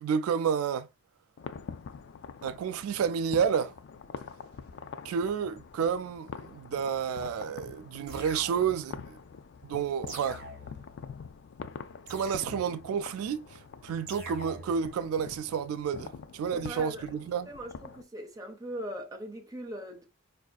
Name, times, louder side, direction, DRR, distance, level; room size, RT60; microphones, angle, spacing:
voice 1, 0.0-0.9 2.4-3.7 5.0-9.2 9.6-10.4 12.1-17.5, right 7 dB, 85° right, 0.3 m, -30 dB
sound 1, 1.4-18.0, left 5 dB, 55° left, 0.3 m, -45 dB
sound 2, 8.1-9.0 10.1-11.0 12.1-13.0 14.1-14.9, right 1 dB, 50° right, 1.6 m, -45 dB
voice 2, 16.5-17.1 17.5-20.1, right 1 dB, 15° right, 0.6 m, -40 dB
4.7 x 2.6 x 2.2 m
head